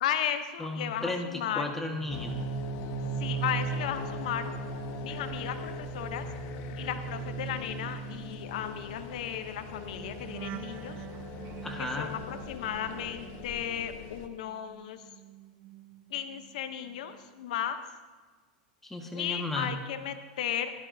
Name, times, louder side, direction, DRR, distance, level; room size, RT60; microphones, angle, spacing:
voice 1, 0.0-1.6 3.2-4.5 5.0-6.3 6.8-11.0 11.8-15.0 16.1-17.8 19.1-20.7, left 10 dB, 75° left, 9 dB, 0.8 m, -35 dB
voice 2, 0.6-2.4 11.6-12.1 18.8-19.7, left 2 dB, 5° left, 2 dB, 1.4 m, -34 dB
sound 1, 1.9-14.2 14.5-16.6 16.9-17.2, right 9 dB, 35° right, 0.5 m, -40 dB
sound 2, 2.1-14.3, left 7 dB, 50° left, 1.0 m, -42 dB
16.5 x 12.0 x 2.7 m, 1.4 s
supercardioid pair, 125°, 4 cm